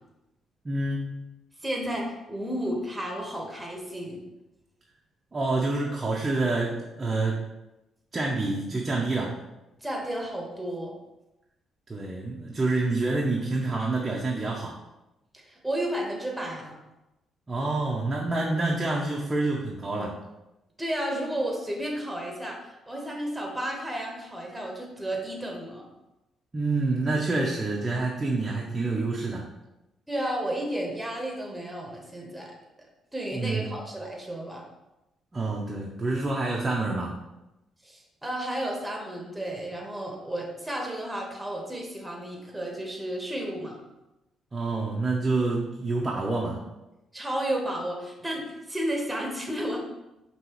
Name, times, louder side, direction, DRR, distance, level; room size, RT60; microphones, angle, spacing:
voice 1, 0.6-1.3 5.3-7.4 8.1-9.4 11.9-14.7 17.5-20.1 26.5-29.5 33.3-33.7 35.3-37.1 44.5-46.6, right 2 dB, 25° right, -3 dB, 0.7 m, -27 dB
voice 2, 1.6-4.2 9.8-10.9 15.3-16.8 20.8-25.9 30.1-32.5 33.1-34.6 37.8-43.8 47.1-49.8, right 1 dB, 10° right, 0 dB, 1.2 m, -32 dB
5.3 x 3.0 x 3.1 m, 0.96 s
cardioid pair, 90°, 0 cm